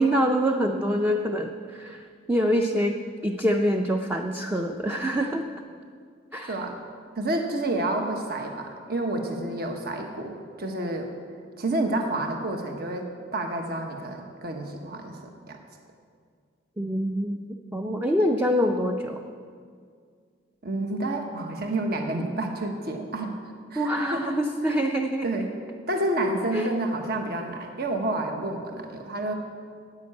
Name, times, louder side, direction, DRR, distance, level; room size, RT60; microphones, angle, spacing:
voice 1, 0.0-3.0 3.2-5.4 6.3-6.6 16.8-19.2 23.8-25.3 26.5-26.7, equal, 10° right, 3 dB, 0.5 m, -25 dB
voice 2, 7.2-11.1 11.6-15.2 15.5-15.6 20.6-23.3 23.7-24.3 24.6-24.7 25.2-25.5 25.9-29.3, right 2 dB, 55° right, 3 dB, 1.2 m, -29 dB
10.5 x 8.5 x 8.5 m, 2.1 s
head